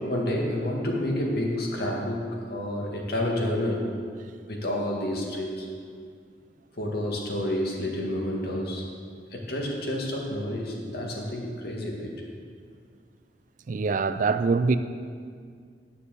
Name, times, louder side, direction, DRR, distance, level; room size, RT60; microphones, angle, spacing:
voice 1, 0.0-3.9 4.5-5.7 6.7-8.8 9.3-12.1, left 1 dB, 60° left, 2.0 m, -29 dB
voice 2, 13.7-14.8, right 4 dB, 45° right, 0.4 m, -24 dB
9.8 x 6.8 x 6.9 m
head